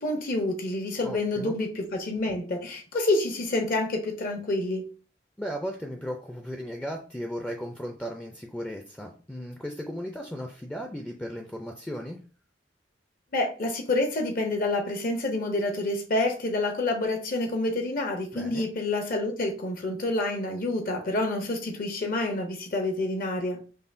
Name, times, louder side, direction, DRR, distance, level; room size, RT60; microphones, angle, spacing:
voice 1, 0.0-4.9 13.3-23.6, left 2 dB, 50° left, 0.6 m, -28 dB
voice 2, 1.0-1.5 5.4-12.2 18.3-18.7, equal, 10° left, 0.3 m, -36 dB
5.4 x 2.2 x 2.5 m
head